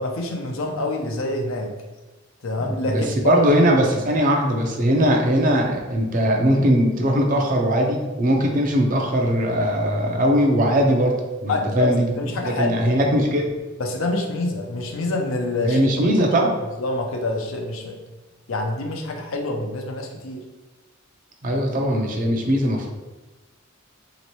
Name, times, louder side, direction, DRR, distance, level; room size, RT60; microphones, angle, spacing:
voice 1, 0.0-1.7 2.4-3.4 11.5-13.2 13.8-15.8 16.8-18.0 18.5-20.4 21.5-21.6, left 2 dB, 75° left, 2 dB, 0.6 m, -26 dB
voice 2, 2.6-12.1 12.4-13.5 15.6-16.6 21.4-22.9, equal, 40° right, 1 dB, 0.5 m, -20 dB
3.0 x 2.9 x 3.0 m, 1.2 s
head